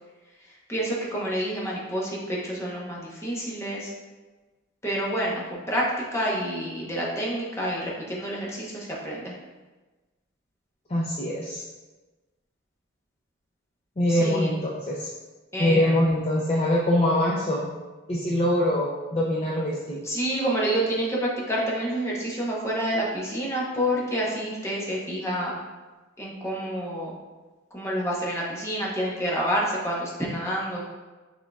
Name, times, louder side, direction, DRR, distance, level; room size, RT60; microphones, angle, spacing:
voice 1, 0.4-3.9 4.8-9.3 14.1-14.6 15.5-15.9 20.0-25.6 26.2-27.2 27.7-30.8, equal, 15° left, -4 dB, 0.8 m, -28 dB
voice 2, 10.9-11.6 14.0-15.1 15.6-17.7 18.1-20.1, left 1 dB, 30° left, -4 dB, 0.4 m, -24 dB
6.2 x 3.6 x 2.3 m, 1.2 s
head